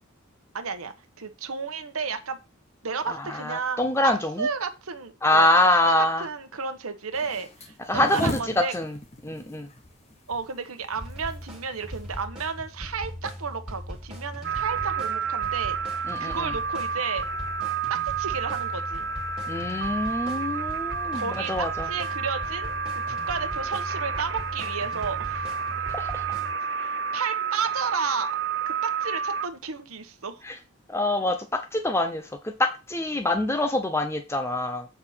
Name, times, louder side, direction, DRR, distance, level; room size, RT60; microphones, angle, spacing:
voice 1, 0.5-2.4 2.8-8.7 10.3-15.8 16.2-17.2 17.9-19.1 21.1-25.4 26.8-28.3 28.7-30.4, right 5 dB, 90° right, 7 dB, 1.1 m, -32 dB
voice 2, 3.1-4.5 5.2-6.3 7.9-8.9 9.2-9.7 16.1-16.5 19.5-21.9 25.9-26.2 30.4-30.6 30.9-34.9, left 2 dB, 10° left, 6 dB, 0.7 m, -25 dB
sound 1, 7.1-12.3, left 1 dB, 30° left, 1.1 m, -36 dB
sound 2, 10.9-26.5, equal, 5° right, 2.5 m, -39 dB
sound 3, 14.4-29.5, right 6 dB, 55° right, 0.6 m, -30 dB
7.9 x 4.4 x 5.7 m, 0.28 s
head